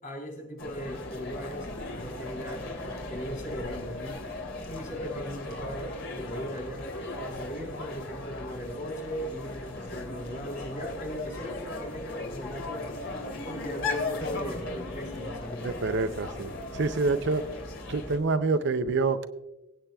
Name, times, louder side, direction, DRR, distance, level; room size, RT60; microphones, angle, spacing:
voice 1, 0.0-4.2 4.6-6.9 7.2-13.2 13.4-15.7, equal, 40° left, 1 dB, 3.6 m, -38 dB
sound 1, 0.6-18.2, left 2 dB, 75° left, 3.0 m, -37 dB
voice 2, 15.6-17.5 17.9-19.3, right 3 dB, 60° right, 11 dB, 0.6 m, -27 dB
23.5 x 8.9 x 2.3 m, 0.95 s
head